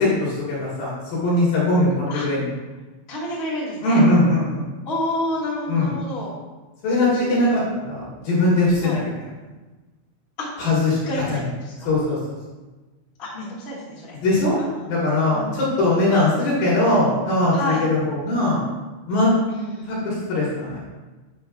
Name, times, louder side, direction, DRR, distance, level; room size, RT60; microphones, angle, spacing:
voice 1, 0.0-2.5 3.8-4.6 5.7-5.9 6.8-9.3 10.6-11.0 11.3-11.5 11.8-12.2 14.2-14.5 14.9-18.6 19.1-19.3 19.9-20.8, left 2 dB, 60° left, -7 dB, 2.9 m, -20 dB
voice 2, 3.1-4.0 4.8-6.3 7.3-7.5 8.8-9.0 10.4-10.5 11.0-11.9 13.2-14.1 14.5-14.8 15.1-15.7 17.5-17.8 19.5-20.1, left 1 dB, 25° left, -8 dB, 1.4 m, -29 dB
9.6 x 7.6 x 2.4 m, 1.2 s
omnidirectional pair, 5.9 m